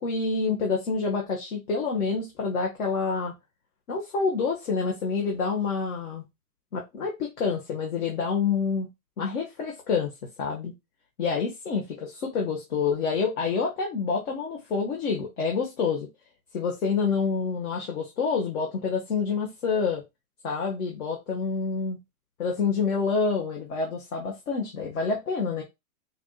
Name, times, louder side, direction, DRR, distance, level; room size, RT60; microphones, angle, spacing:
voice 1, 0.0-3.3 3.9-6.2 6.7-8.9 9.2-10.1 10.4-10.7 11.2-16.1 16.5-20.0 20.4-22.0 22.4-25.6, left 5 dB, 60° left, 1.6 m, -27 dB
5.0 x 2.8 x 2.3 m
hypercardioid pair, 150°, 45 cm